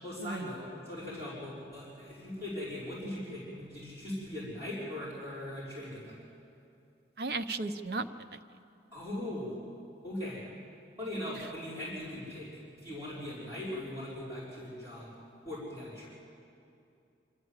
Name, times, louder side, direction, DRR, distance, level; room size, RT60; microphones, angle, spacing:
voice 1, 0.0-6.1 8.9-9.5 10.0-10.4 11.0-12.5 12.7-15.1 15.4-16.1, left 1 dB, 15° right, -11 dB, 5.4 m, -40 dB
voice 2, 7.2-8.4, right 3 dB, 60° right, 9 dB, 0.7 m, -35 dB
25.0 x 13.0 x 8.1 m, 2.6 s
head